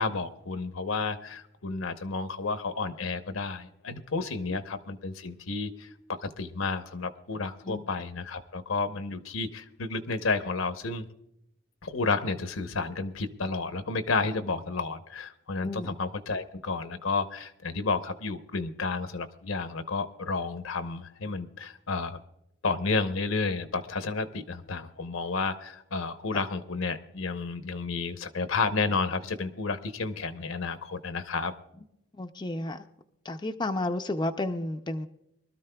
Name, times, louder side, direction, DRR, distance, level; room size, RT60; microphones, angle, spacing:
voice 1, 0.0-5.9 6.2-11.1 11.8-22.2 22.6-31.5, left 4 dB, 80° left, 9 dB, 0.9 m, -31 dB
voice 2, 15.6-16.0 26.3-26.4 32.1-32.8 33.2-35.1, left 2 dB, 20° left, 6 dB, 0.4 m, -32 dB
24.0 x 13.0 x 2.3 m, 0.85 s
head